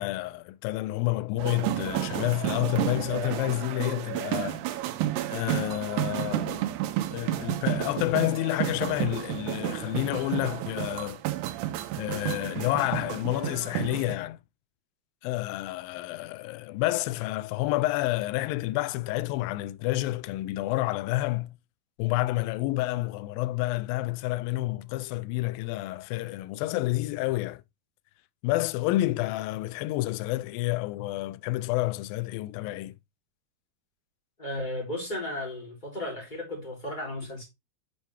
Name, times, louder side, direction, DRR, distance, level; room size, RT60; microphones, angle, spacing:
voice 1, 0.0-4.6 5.3-6.7 7.1-11.2 12.0-14.4 15.2-21.6 22.0-27.6 28.4-32.9, left 18 dB, 85° left, 2.0 m, -29 dB
sound 1, 1.4-14.1, right 13 dB, 90° right, 2.7 m, -31 dB
voice 2, 34.4-37.4, left 1 dB, 10° left, 3.1 m, -34 dB
8.1 x 4.6 x 3.4 m
omnidirectional pair, 4.6 m